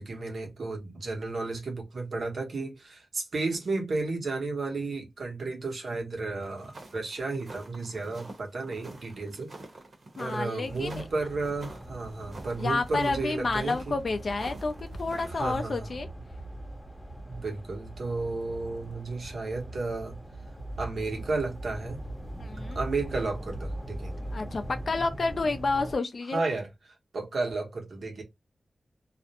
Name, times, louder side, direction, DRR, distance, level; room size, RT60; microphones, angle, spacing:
voice 1, 0.0-9.5 10.2-14.0 15.3-15.9 17.3-20.2 20.8-22.0 22.7-24.2 26.3-26.7 27.1-28.2, right 3 dB, 85° right, 0.9 m, -33 dB
sound 1, 6.4-15.7, right 2 dB, 55° right, 0.8 m, -48 dB
voice 2, 10.2-11.0 12.6-16.1 22.4-22.8 24.3-26.4, left 3 dB, 60° left, 0.4 m, -30 dB
sound 2, 10.6-26.0, right 1 dB, 5° left, 0.7 m, -41 dB
2.4 x 2.0 x 2.8 m
wide cardioid pair, 110°, 0 cm